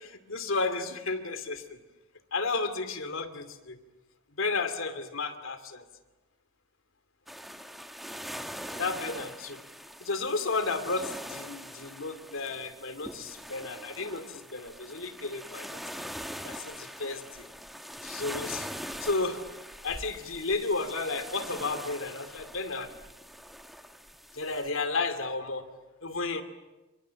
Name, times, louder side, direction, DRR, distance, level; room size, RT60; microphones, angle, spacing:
voice 1, 0.0-1.6 2.3-3.8 4.4-5.8 8.7-9.6 10.0-15.8 16.4-17.2 18.0-18.7 19.0-19.4 19.8-22.9 24.3-25.7 26.0-26.4, left 3 dB, 85° left, 10 dB, 2.6 m, -32 dB
sound 1, 7.3-24.7, equal, ahead, 1.3 m, -43 dB
29.0 x 26.0 x 7.6 m, 1.2 s
head